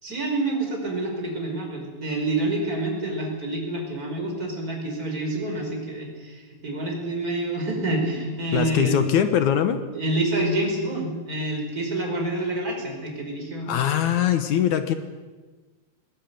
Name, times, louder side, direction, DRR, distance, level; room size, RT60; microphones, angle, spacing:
voice 1, 0.0-8.9 9.8-13.7, right 2 dB, 25° right, 1 dB, 5.3 m, -27 dB
voice 2, 8.5-9.8 13.7-14.9, left 9 dB, 65° left, 9 dB, 2.2 m, -21 dB
20.5 x 18.0 x 9.3 m, 1.3 s
omnidirectional pair, 4.3 m